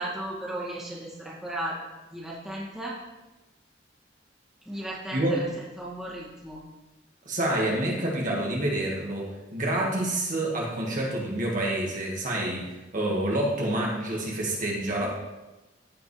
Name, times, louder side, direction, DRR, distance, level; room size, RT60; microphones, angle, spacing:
voice 1, 0.0-1.8 2.1-3.0 4.7-5.5 5.8-6.6 15.0-15.1, right 1 dB, 5° right, -7 dB, 2.1 m, -35 dB
voice 2, 7.3-15.1, right 1 dB, 45° right, -3 dB, 1.8 m, -28 dB
15.0 x 5.2 x 3.3 m, 1.1 s
head